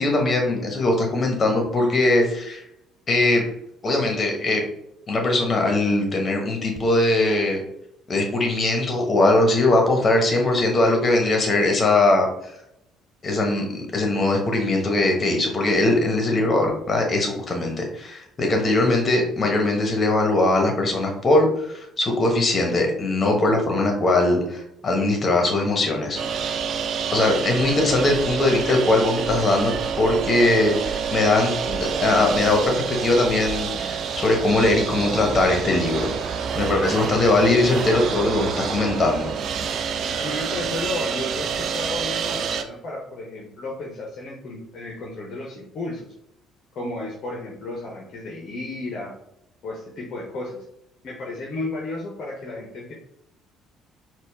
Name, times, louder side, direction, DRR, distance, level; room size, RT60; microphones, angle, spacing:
voice 1, 0.0-2.6 3.1-3.5 3.8-4.6 5.1-7.6 8.1-12.3 13.2-26.2 27.1-36.1 36.5-39.3, left 2 dB, 35° left, 2 dB, 1.3 m, -21 dB
sound 1, 26.1-42.6, right 6 dB, 55° right, 0.4 m, -27 dB
voice 2, 39.9-46.1 46.7-49.1 49.6-50.6 51.0-52.9, left 2 dB, 50° left, -2 dB, 0.9 m, -33 dB
4.3 x 2.5 x 3.5 m, 0.76 s
figure-of-eight pair, 50°, 0 cm